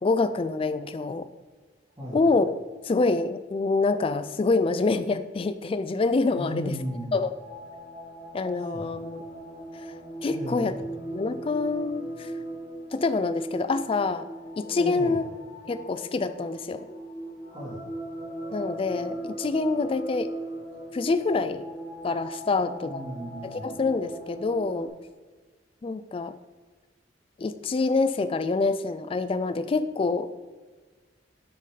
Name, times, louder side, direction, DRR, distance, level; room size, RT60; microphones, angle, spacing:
voice 1, 0.0-1.3 2.1-2.5 2.8-6.7 7.1-7.3 8.3-9.2 10.2-10.7 11.1-12.3 12.9-14.3 14.6-15.2 15.7-16.9 18.5-20.3 20.9-21.7 22.0-23.0 23.4-24.9 25.8-26.3 27.4-30.3, left 3 dB, 30° left, 12 dB, 0.3 m, -26 dB
voice 2, 6.3-7.2 8.5-8.9 10.3-10.8 14.8-15.2 17.5-17.8 22.4-23.7, equal, 25° right, -11 dB, 1.8 m, -36 dB
sound 1, 6.6-24.9, right 1 dB, 45° left, 1.6 m, -39 dB
6.6 x 4.5 x 4.9 m, 1.4 s
head